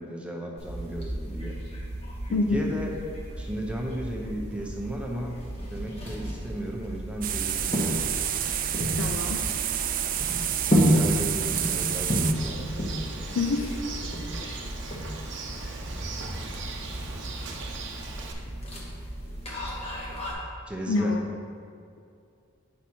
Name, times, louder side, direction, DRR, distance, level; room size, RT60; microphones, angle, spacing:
voice 1, 0.0-1.5 2.3-3.0 3.4-8.0 10.7-12.6 20.7-21.2, right 1 dB, 5° right, -1 dB, 0.7 m, -35 dB
sound 1, 0.6-20.3, equal, 30° left, 1.1 m, -32 dB
voice 2, 2.3-2.7 9.0-9.4 13.4-13.8 14.4-14.6 20.9-21.2, left 3 dB, 70° left, 3 dB, 0.4 m, -27 dB
sound 2, 7.2-12.3, right 10 dB, 40° right, 0.3 m, -29 dB
Bird, 12.3-18.3, right 3 dB, 55° right, 0.7 m, -38 dB
8.5 x 6.0 x 2.8 m, 2.3 s
head